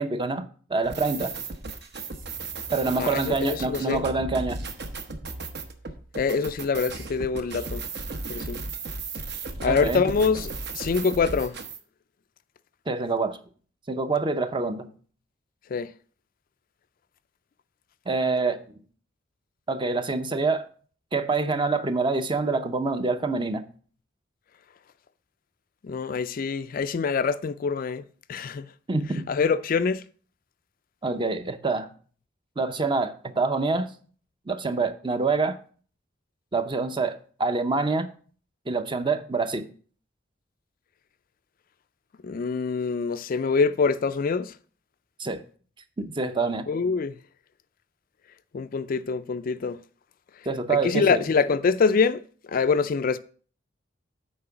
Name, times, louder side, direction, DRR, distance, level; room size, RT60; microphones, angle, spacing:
voice 1, 0.0-1.3 2.7-4.7 9.6-10.1 12.9-13.4 13.9-14.9 18.1-18.6 19.7-20.7 21.1-23.7 28.9-29.3 31.0-31.9 32.6-33.9 34.5-35.6 36.5-38.1 38.7-39.7 45.2-45.4 46.0-46.7 50.5-51.2, right 3 dB, 25° right, 0.6 m, -26 dB
sound 1, 0.8-11.8, right 3 dB, 60° right, 1.0 m, -35 dB
voice 2, 3.0-4.0 6.2-7.8 8.3-8.6 9.6-11.6 15.7-15.9 25.8-28.0 28.3-28.7 29.3-30.0 42.2-44.5 46.7-47.2 48.5-49.8 50.7-52.2 52.5-53.2, left 5 dB, 45° left, 0.4 m, -25 dB
8.7 x 4.5 x 5.8 m
head